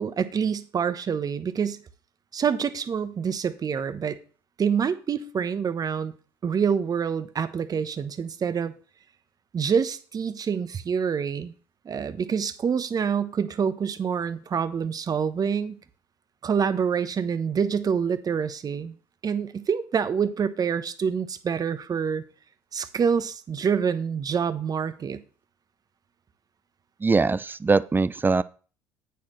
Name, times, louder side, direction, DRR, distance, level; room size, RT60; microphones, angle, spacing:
voice 1, 0.0-1.8 2.3-4.2 4.6-6.1 6.4-8.7 9.5-11.5 11.8-15.8 16.4-18.9 19.2-22.2 22.7-25.2, right 7 dB, 40° right, 1.0 m, -26 dB
voice 2, 27.0-28.4, right 4 dB, 20° right, 0.5 m, -22 dB
10.0 x 8.6 x 3.2 m
hypercardioid pair, 65°, 10 cm